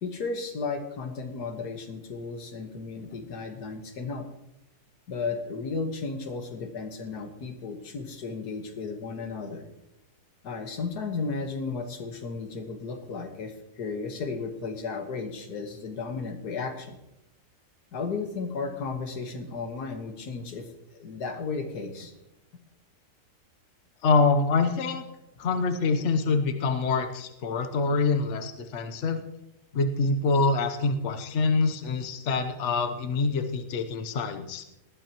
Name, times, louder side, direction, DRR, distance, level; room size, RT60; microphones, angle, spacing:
voice 1, 0.0-4.3 5.1-9.7 10.4-17.0 17.9-22.1, left 4 dB, 85° left, 5 dB, 2.0 m, -34 dB
voice 2, 24.0-25.0 25.4-29.2 29.7-34.6, left 4 dB, 50° left, 7 dB, 1.2 m, -25 dB
19.0 x 12.5 x 3.0 m, 0.90 s
omnidirectional pair, 1.6 m